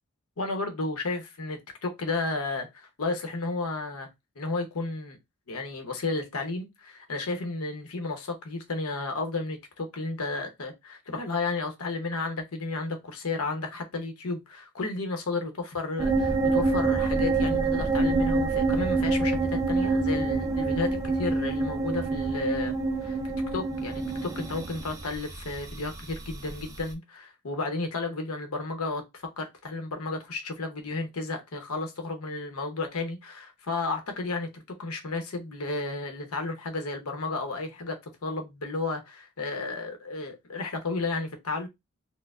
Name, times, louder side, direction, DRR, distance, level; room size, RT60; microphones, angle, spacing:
voice 1, 0.4-4.1 4.4-5.2 5.5-22.7 23.0-23.2 23.5-41.7, left 3 dB, 80° left, 0.8 m, -33 dB
sound 1, 16.0-26.9, right 3 dB, 15° right, 0.3 m, -27 dB
4.4 x 2.0 x 2.4 m
head